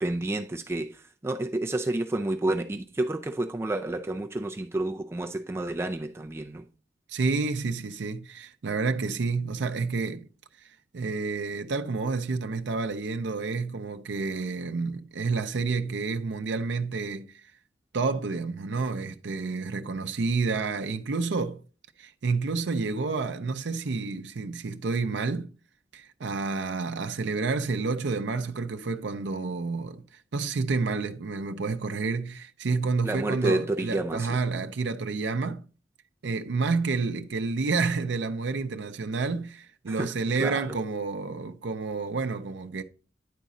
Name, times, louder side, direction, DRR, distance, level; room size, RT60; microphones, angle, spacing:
voice 1, 0.0-6.6 33.0-34.4 39.9-40.1 40.4-40.6, right 2 dB, 15° right, 0.4 m, -30 dB
voice 2, 7.1-10.3 10.6-17.4 17.9-21.6 22.0-25.5 25.9-35.6 36.2-42.8, right 4 dB, 80° right, 0.5 m, -29 dB
10.0 x 4.1 x 3.7 m
head